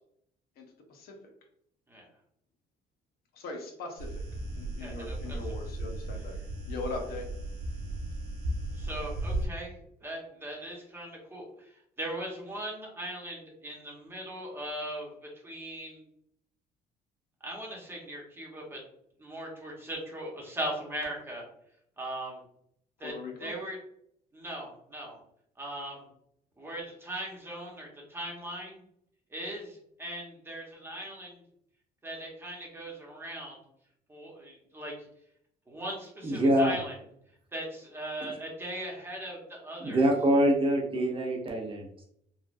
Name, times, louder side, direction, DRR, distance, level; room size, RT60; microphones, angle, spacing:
voice 1, 0.6-1.2 3.3-4.3 4.6-6.4 6.7-7.3 23.0-23.5, left 2 dB, 65° left, 2 dB, 0.7 m, -40 dB
sound 1, 4.0-9.5, right 1 dB, 70° right, 0.9 m, -36 dB
voice 2, 4.8-5.4 8.7-15.1 15.4-16.1 17.4-18.8 19.2-21.4 22.0-22.4 23.0-23.1 23.4-23.8 24.3-25.2 25.6-26.0 26.6-28.8 29.3-31.4 32.0-33.6 34.1-34.9 35.7-36.9 37.5-40.1, right 1 dB, 15° right, -2 dB, 1.0 m, -39 dB
voice 3, 36.2-36.7 39.8-42.1, right 1 dB, 30° right, 1 dB, 0.6 m, -25 dB
3.2 x 2.3 x 2.5 m, 0.71 s
cardioid pair, 110°, 17 cm